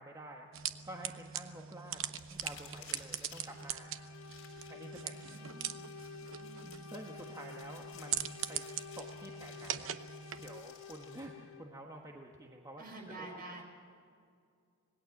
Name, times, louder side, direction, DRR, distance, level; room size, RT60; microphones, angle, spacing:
voice 1, 0.0-3.9 4.7-5.5 6.8-8.6 9.0-10.0 10.4-12.8 13.2-13.3, right 1 dB, 15° right, 0 dB, 1.4 m, -49 dB
sound 1, 0.5-10.6, right 9 dB, 65° right, 0.9 m, -42 dB
sound 2, 2.1-11.2, left 7 dB, 60° left, 5.7 m, -57 dB
sound 3, 3.5-11.8, left 5 dB, 85° left, 0.8 m, -51 dB
voice 2, 5.1-5.8 6.3-6.9 12.8-13.6, right 2 dB, 45° right, 2 dB, 5.5 m, -49 dB
26.5 x 20.0 x 7.3 m, 2.3 s
head